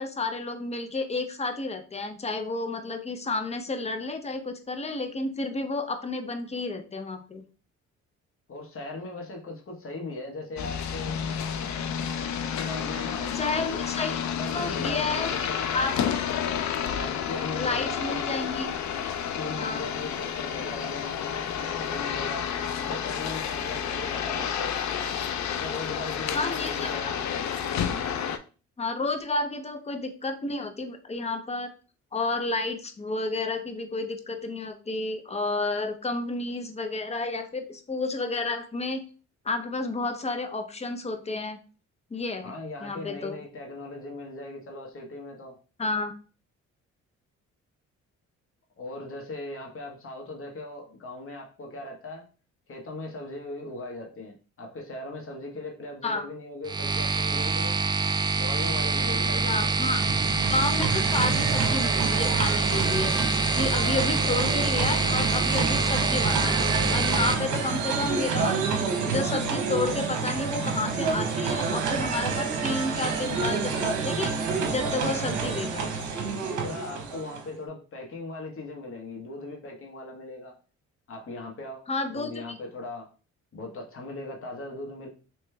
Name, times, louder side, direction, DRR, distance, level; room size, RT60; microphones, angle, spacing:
voice 1, 0.0-7.4 13.3-14.1 14.5-15.9 17.6-18.7 19.2-19.9 26.3-27.1 28.8-31.7 32.1-39.0 39.4-41.6 42.1-42.5 42.8-43.4 45.8-46.1 56.0-56.3 59.4-60.0 60.5-63.2 63.5-75.9 81.9-82.3, left 3 dB, 20° left, 8 dB, 0.7 m, -31 dB
voice 2, 8.5-11.2 12.6-13.9 14.4-15.6 16.9-18.5 19.2-24.7 25.5-27.4 42.4-45.6 48.8-52.2 52.7-57.8 58.3-59.7 63.8-65.1 76.4-80.6 81.1-81.9 82.1-83.1 83.5-85.1, left 2 dB, 45° left, 0 dB, 1.2 m, -39 dB
sound 1, 10.6-28.4, left 8 dB, 65° left, 0.5 m, -30 dB
sound 2, 56.6-67.3, right 3 dB, 15° right, 0.3 m, -25 dB
sound 3, 59.6-77.5, right 5 dB, 75° right, 1.0 m, -29 dB
3.3 x 3.1 x 3.3 m, 0.36 s
cardioid pair, 90°, 30 cm